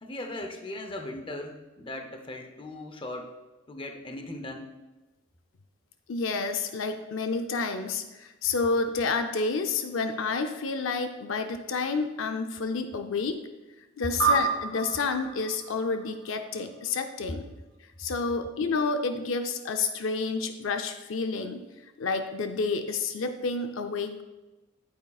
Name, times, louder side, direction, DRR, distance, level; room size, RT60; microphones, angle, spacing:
voice 1, 0.0-3.3 3.7-4.7, left 1 dB, 25° left, 5 dB, 0.7 m, -38 dB
voice 2, 6.1-13.4 14.0-17.5 18.0-21.6 22.0-24.2, left 4 dB, 70° left, 7 dB, 0.5 m, -29 dB
sound 1, 14.2-16.9, right 5 dB, 85° right, 2.1 m, -30 dB
8.9 x 8.4 x 2.3 m, 1.1 s
head